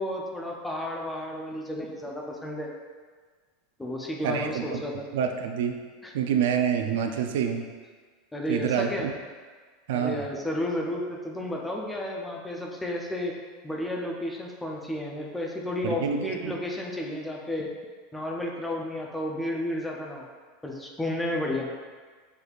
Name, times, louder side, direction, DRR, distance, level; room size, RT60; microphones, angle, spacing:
voice 1, 0.0-2.7 3.8-5.1 6.0-6.1 8.3-9.1 9.9-13.3 13.6-17.7 18.1-20.3 20.6-21.7, left 1 dB, 5° left, -1 dB, 0.5 m, -32 dB
voice 2, 4.2-4.8 5.1-5.8 6.1-7.7 8.5-9.1 9.9-10.3 15.8-16.5, right 7 dB, 75° right, 5 dB, 0.4 m, -27 dB
6.2 x 3.4 x 2.4 m, 1.5 s
supercardioid pair, 165°, 0 cm